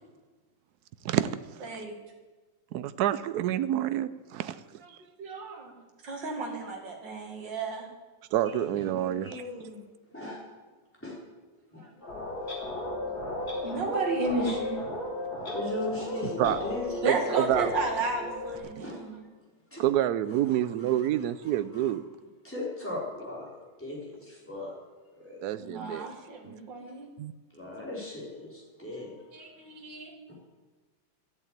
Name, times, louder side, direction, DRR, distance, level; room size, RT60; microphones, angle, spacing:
voice 1, 1.0-1.7 2.7-4.5 4.9-5.0 8.3-9.4 16.4-16.6 17.0-17.7 19.8-22.0 25.4-26.1 27.2-27.3, right 12 dB, 80° right, 0.9 m, -28 dB
voice 2, 1.6-2.0 5.2-5.7 6.0-7.9 11.8-11.9 13.6-14.8 17.0-19.2 25.6-27.1 28.9-29.0 29.3-30.2, right 3 dB, 65° right, 2.7 m, -33 dB
voice 3, 8.8-9.8 10.1-10.4 11.0-11.2 11.7-12.2 12.6-13.2 13.7-13.8 15.5-17.1 18.8-19.1 19.7-19.8 20.2-21.0 21.4-21.9 22.4-24.7 25.2-25.4 27.5-29.6 30.3-30.4, left 2 dB, 5° left, 4.2 m, -39 dB
sound 1, 12.0-18.6, left 2 dB, 50° left, 3.2 m, -35 dB
Clock, 12.4-12.6 13.4-13.6 14.5-14.7 15.0-15.1 15.4-15.6 16.4-16.6, left 2 dB, 30° left, 3.0 m, -43 dB
13.5 x 7.9 x 8.9 m
omnidirectional pair, 2.2 m